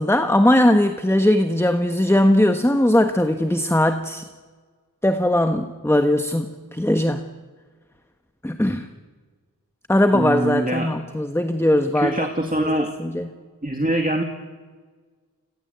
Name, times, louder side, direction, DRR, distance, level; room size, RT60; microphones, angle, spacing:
voice 1, 0.0-4.3 5.0-7.2 8.4-8.9 9.9-12.1 12.6-13.3, left 1 dB, 5° left, 7 dB, 1.3 m, -19 dB
voice 2, 10.1-10.9 11.9-12.9 13.6-14.2, right 1 dB, 25° right, 3 dB, 2.2 m, -23 dB
29.5 x 22.5 x 8.1 m, 1.5 s
wide cardioid pair, 50°, 36 cm